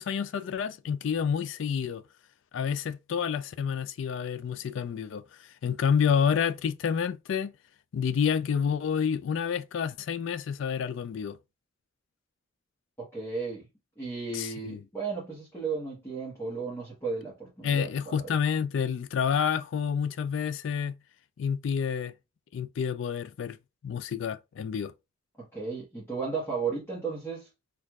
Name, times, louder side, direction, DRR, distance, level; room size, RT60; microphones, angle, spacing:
voice 1, 0.0-2.0 2.5-5.2 5.6-7.5 7.9-11.4 14.3-14.8 17.6-21.0 21.4-22.1 22.5-23.6 23.8-24.9, left 7 dB, 65° left, 0.3 m, -29 dB
voice 2, 13.0-13.7 14.0-18.3 25.4-27.5, right 4 dB, 10° left, 1.1 m, -34 dB
4.4 x 2.5 x 2.3 m
head